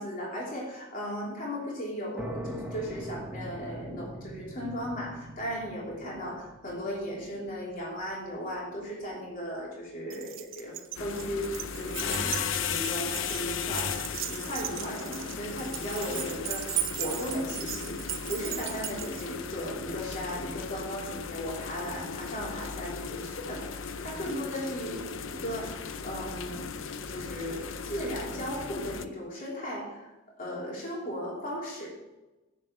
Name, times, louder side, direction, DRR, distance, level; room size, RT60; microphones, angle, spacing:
voice 1, 0.0-12.4 12.7-26.6 27.1-30.1 30.4-31.9, equal, 45° left, -4 dB, 3.3 m, -36 dB
sound 1, 2.2-9.6, right 1 dB, 10° right, 1.1 m, -43 dB
Keys jangling, 10.1-19.3, right 11 dB, 75° right, 0.8 m, -37 dB
sound 2, 10.9-29.0, left 6 dB, 70° left, 0.6 m, -36 dB
8.4 x 7.2 x 6.1 m, 1.1 s
head